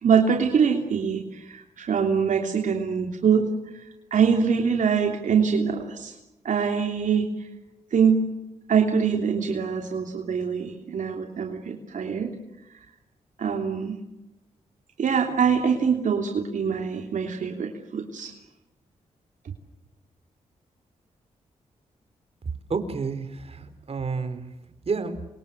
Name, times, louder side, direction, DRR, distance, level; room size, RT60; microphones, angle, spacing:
voice 1, 0.0-3.5 4.1-6.1 6.4-7.3 7.9-8.2 8.7-12.3 13.4-13.9 15.0-18.3, right 6 dB, 75° right, 2 dB, 3.2 m, -24 dB
voice 2, 22.7-24.5 24.9-25.2, right 4 dB, 50° right, 10 dB, 4.3 m, -30 dB
27.5 x 24.5 x 7.8 m, 0.95 s
cardioid pair, 65°, 13 cm